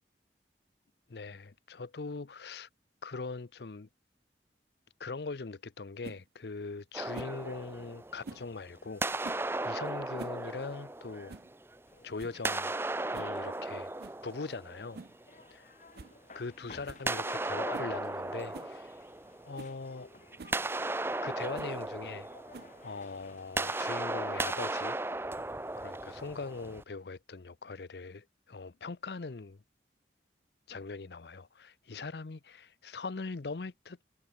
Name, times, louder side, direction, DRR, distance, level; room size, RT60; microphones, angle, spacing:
voice 1, 1.1-2.7 3.0-3.9 5.0-11.4 12.0-12.7 13.1-13.9 14.2-15.0 16.3-19.0 19.4-20.1 21.2-22.3 22.8-25.0 25.8-29.6 30.7-34.0, left 4 dB, 70° left, 0.7 m, -41 dB
sound 1, 6.0-6.2 7.1-7.4 8.2-8.5 9.2-9.5 10.0-10.4 10.7-10.8 11.3-11.5 11.9-12.0 12.2-12.4 13.1-13.4 14.0-14.2 14.9-15.2 15.5-15.6 15.9-16.2 16.4-16.5 16.9-17.1 17.7-17.9 18.5-18.7 19.2-19.3 19.6-19.8 20.4-20.6 21.5-21.8 22.5-22.9, right 3 dB, 60° right, 0.5 m, -47 dB
sound 2, 6.9-8.6 9.0-11.8 12.3-15.2 17.1-19.8 20.2-26.8, right 2 dB, 15° right, 0.7 m, -36 dB
sound 3, 11.9-25.1, left 3 dB, 45° left, 1.4 m, -57 dB
head